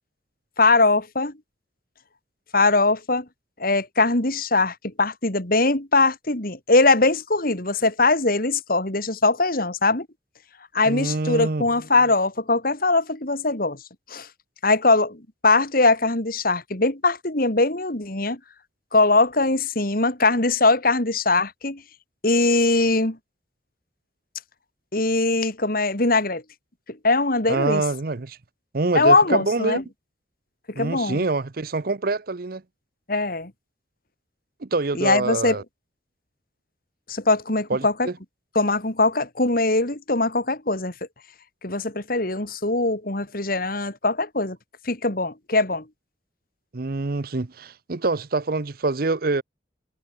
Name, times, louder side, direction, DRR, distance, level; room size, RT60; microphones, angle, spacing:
voice 1, 0.6-1.3 2.5-3.3 3.6-10.1 10.7-13.8 14.1-14.3 14.6-18.4 18.9-21.8 22.2-23.2 24.9-26.4 26.9-27.8 28.9-29.8 30.8-31.2 33.1-33.5 34.9-35.6 37.1-38.1 38.5-40.9 41.6-44.6 44.8-45.8, left 3 dB, 50° left, 2.9 m, -21 dB
voice 2, 10.9-11.7 27.5-28.4 28.7-29.8 30.7-32.6 34.6-35.6 37.7-38.1 46.7-49.4, right 3 dB, 55° right, 0.8 m, -25 dB
head